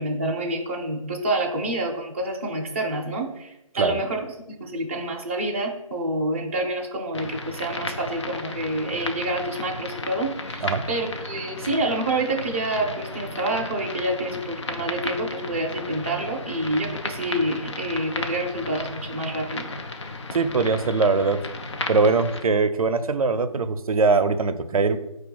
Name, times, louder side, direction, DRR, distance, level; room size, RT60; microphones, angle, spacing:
voice 1, 0.0-19.7, right 1 dB, 20° right, -1 dB, 0.5 m, -28 dB
sound 1, 7.1-22.4, left 3 dB, 55° left, 0.6 m, -34 dB
voice 2, 20.3-21.5 21.9-25.0, right 4 dB, 85° right, 9 dB, 0.4 m, -21 dB
4.7 x 2.2 x 4.6 m, 0.88 s
figure-of-eight pair, 160°, 18 cm